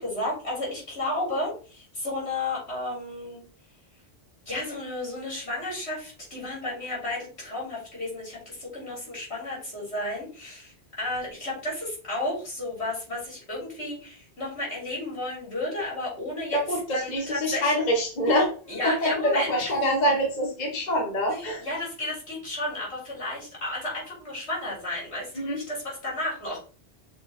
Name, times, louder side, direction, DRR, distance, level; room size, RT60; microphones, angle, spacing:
voice 1, 0.0-3.4 4.5-16.6 16.9-17.7 18.7-19.5 19.8-19.9 21.3-26.6, left 1 dB, 75° left, -5 dB, 3.8 m, -33 dB
voice 2, 16.5-18.5 18.8-21.6 25.3-25.6, equal, 40° left, 0 dB, 1.2 m, -25 dB
6.0 x 3.7 x 4.3 m, 0.40 s
omnidirectional pair, 1.1 m